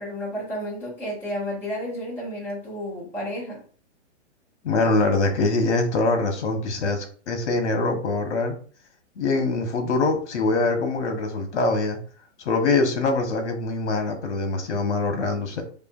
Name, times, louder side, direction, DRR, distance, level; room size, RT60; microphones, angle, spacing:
voice 1, 0.0-3.6, equal, 5° left, -11 dB, 1.6 m, -31 dB
voice 2, 4.6-8.5 9.2-12.0 12.4-15.6, left 3 dB, 70° left, 5 dB, 1.3 m, -23 dB
4.8 x 2.7 x 2.5 m, 0.43 s
hypercardioid pair, 180°, 36 cm